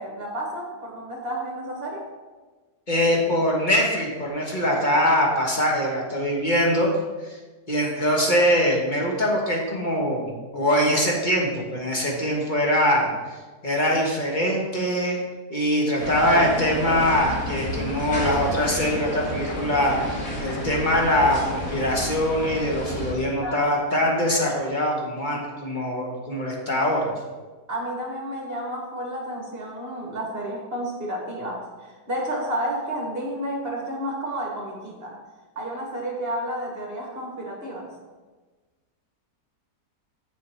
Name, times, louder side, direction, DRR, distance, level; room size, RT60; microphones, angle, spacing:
voice 1, 0.0-2.1 23.4-24.4 27.7-35.2 35.5-37.9, right 1 dB, 40° right, 0 dB, 1.7 m, -31 dB
voice 2, 2.9-6.9 7.7-13.1 13.6-15.2 15.5-27.1, equal, 30° left, -1 dB, 1.5 m, -23 dB
sound 1, 16.0-23.1, equal, 55° left, 2.6 m, -30 dB
6.9 x 6.9 x 4.5 m, 1.3 s
omnidirectional pair, 1.7 m